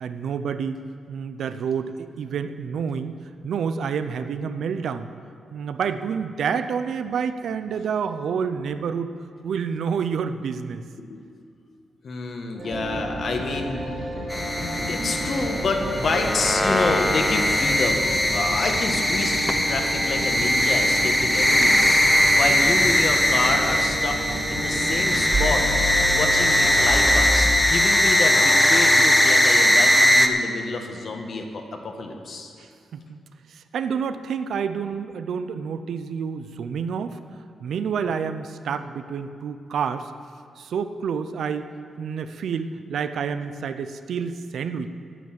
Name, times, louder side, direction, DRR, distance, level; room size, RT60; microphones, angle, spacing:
voice 1, 0.0-5.1 5.5-9.1 9.4-10.8 32.6-33.2 33.5-37.2 37.6-40.1 40.6-41.7 42.0-44.9, right 6 dB, 75° right, 10 dB, 0.6 m, -28 dB
voice 2, 12.0-13.8 14.9-25.6 26.1-32.5, left 3 dB, 55° left, 3 dB, 1.5 m, -28 dB
sound 1, 12.6-27.5, right 1 dB, 45° right, 3.0 m, -30 dB
sound 2, 14.3-30.3, left 1 dB, 10° left, 0.8 m, -20 dB
10.0 x 9.3 x 7.6 m, 2.3 s
cardioid pair, 120°, 0 cm